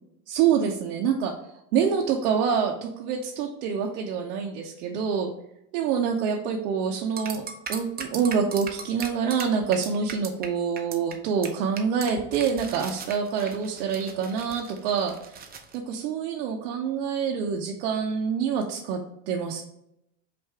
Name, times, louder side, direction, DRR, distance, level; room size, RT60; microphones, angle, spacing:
voice 1, 0.3-1.3 1.7-5.3 5.7-7.4 7.7-15.4 15.7-19.0 19.3-19.6, right 6 dB, 70° right, -1 dB, 0.8 m, -26 dB
sound 1, 7.2-10.5 10.8-11.1 11.4-11.5 11.8-15.8, right 6 dB, 20° right, 0.6 m, -38 dB
4.9 x 2.6 x 3.3 m, 0.80 s
hypercardioid pair, 90°, 47 cm